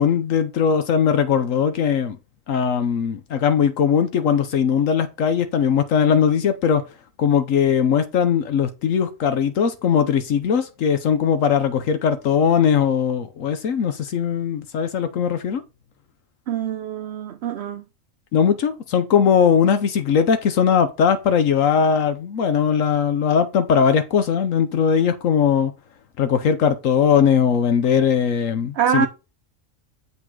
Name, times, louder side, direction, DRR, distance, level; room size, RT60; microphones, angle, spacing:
voice 1, 0.0-2.2 2.5-6.8 7.2-15.6 18.3-25.7 26.2-29.1, left 7 dB, 75° left, 1.2 m, -19 dB
voice 2, 16.5-17.8 28.8-29.1, right 8 dB, 65° right, 0.8 m, -24 dB
7.4 x 5.6 x 3.8 m
omnidirectional pair, 1.4 m